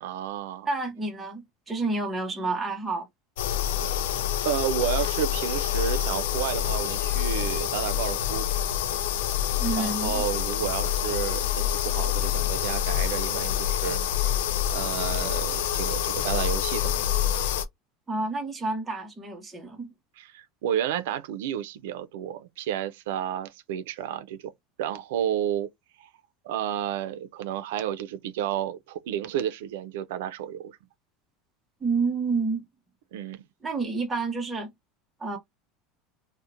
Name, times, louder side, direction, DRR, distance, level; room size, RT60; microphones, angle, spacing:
voice 1, 0.0-0.7 4.4-8.5 9.7-14.4 14.7-17.1 20.2-24.4 24.8-25.7 26.0-26.1 26.4-30.8 33.1-33.4, right 10 dB, 90° right, 0.4 m, -31 dB
voice 2, 0.6-3.1 9.6-10.2 18.1-19.9 31.8-32.6 33.6-34.7 35.2-35.4, right 3 dB, 10° right, 0.6 m, -29 dB
sound 1, 3.4-17.7, left 10 dB, 90° left, 0.3 m, -27 dB
2.8 x 2.0 x 2.4 m
supercardioid pair, 170°, 0 cm